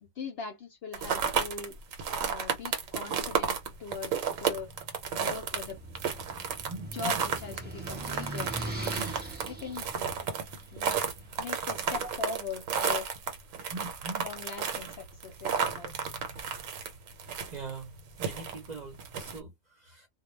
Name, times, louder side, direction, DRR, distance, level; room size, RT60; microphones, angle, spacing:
voice 1, 0.0-1.8 2.2-4.7 5.1-5.8 6.9-9.1 9.5-10.3 10.7-11.0 11.4-13.1 14.2-15.9, left 5 dB, 60° left, 0.7 m, -41 dB
sound 1, 0.9-19.4, right 7 dB, 75° right, 1.0 m, -32 dB
sound 2, 5.3-11.6, right 1 dB, 10° right, 0.9 m, -40 dB
voice 2, 6.7-7.2 8.9-9.1 12.0-12.1 13.7-14.3 17.5-20.1, right 3 dB, 45° right, 0.7 m, -42 dB
2.1 x 2.1 x 3.1 m
omnidirectional pair, 1.4 m